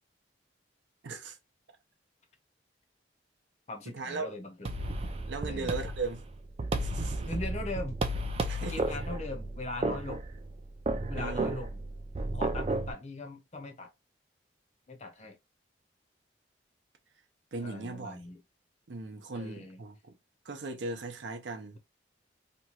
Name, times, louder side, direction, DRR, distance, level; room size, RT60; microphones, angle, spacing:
voice 1, 1.0-1.4 3.9-4.3 4.8-5.0 5.3-6.2 6.8-7.3 8.4-8.8 11.1-11.5 17.5-18.3 18.9-20.2 20.4-21.8, right 3 dB, 80° right, 0.6 m, -38 dB
voice 2, 3.7-4.7 5.5-5.7 7.3-8.0 8.6-10.2 11.1-11.8 12.3-13.9 14.9-15.4 17.6-18.4 19.3-19.8, left 2 dB, 35° left, 0.6 m, -40 dB
sound 1, 4.7-12.9, right 2 dB, 30° right, 0.3 m, -33 dB
2.9 x 2.3 x 2.8 m
head